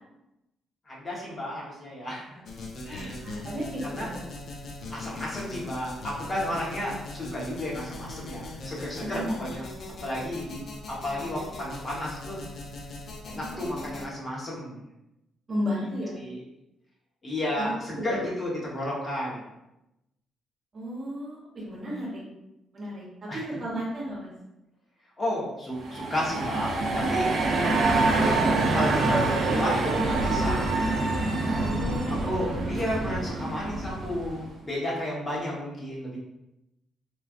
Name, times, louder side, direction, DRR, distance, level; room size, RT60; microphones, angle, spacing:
voice 1, 0.9-2.4 2.8-3.5 3.8-4.1 4.9-9.6 10.0-12.4 13.2-14.8 16.2-16.4 17.2-19.4 23.3-23.4 25.2-28.4 28.7-31.1 31.5-31.7 32.1-36.2, left 1 dB, 35° left, -5 dB, 1.1 m, -33 dB
sound 1, 2.4-14.1, left 2 dB, 60° left, 0.5 m, -40 dB
voice 2, 3.2-4.1 9.1-9.4 13.3-14.1 15.5-16.2 17.6-18.2 20.7-22.2 22.7-24.3 31.6-33.0, equal, 45° right, -4 dB, 1.0 m, -34 dB
sound 2, 25.8-34.5, right 2 dB, 65° right, 0.5 m, -26 dB
3.1 x 2.4 x 2.4 m, 0.90 s
cardioid pair, 90°, 0 cm